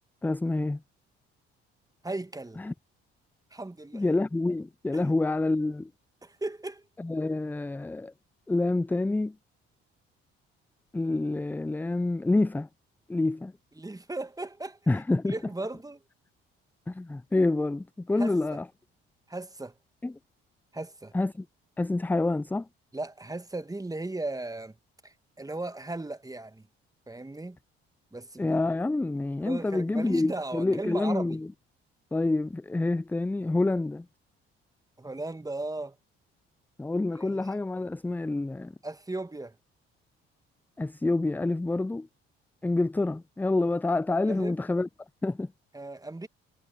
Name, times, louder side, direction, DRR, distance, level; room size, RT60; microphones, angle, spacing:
voice 1, 0.2-0.8 2.6-2.7 3.9-5.9 7.0-8.1 8.5-9.4 10.9-12.7 13.1-13.5 14.9-15.3 16.9-18.6 20.0-20.1 21.1-21.4 21.8-22.7 28.4-31.5 32.1-34.1 36.8-38.7 40.8-42.1 42.6-44.9 45.2-45.5, left 2 dB, 5° left, 0.4 m, -27 dB
voice 2, 2.0-2.6 3.5-4.0 4.9-5.0 6.2-6.8 13.8-16.0 18.2-18.6 19.3-19.7 20.7-21.1 22.9-24.8 25.0-26.7 27.1-27.6 28.1-28.6 29.4-31.4 35.0-36.0 37.2-37.5 38.8-39.5 44.3-44.5 45.7-46.3, right 2 dB, 10° right, 1.4 m, -37 dB
hypercardioid pair, 50°, 30 cm